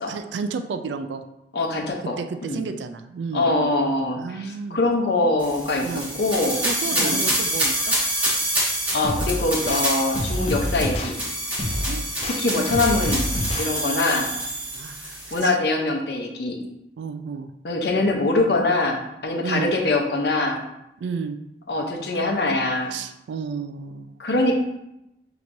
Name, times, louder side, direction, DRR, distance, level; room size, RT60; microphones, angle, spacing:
voice 1, 0.1-1.2 2.2-3.7 4.2-4.8 5.8-6.1 6.6-7.9 11.9-12.1 14.7-15.6 17.0-17.5 19.4-19.7 21.0-21.4 22.9-24.1, right 5 dB, 85° right, 8 dB, 0.3 m, -31 dB
voice 2, 1.5-2.1 2.4-2.6 3.3-5.9 6.2-6.6 6.9-7.2 8.9-11.2 12.4-13.3 13.6-14.3 15.3-16.6 17.6-20.6 21.7-22.9 24.2-24.6, left 2 dB, 70° left, 1 dB, 0.7 m, -23 dB
sound 1, 5.4-15.4, right 1 dB, 10° right, 1.1 m, -27 dB
sound 2, 9.0-9.8 10.1-11.1 11.6-12.4 12.7-13.7, left 1 dB, 35° left, 0.4 m, -27 dB
5.9 x 2.9 x 2.6 m, 0.86 s
head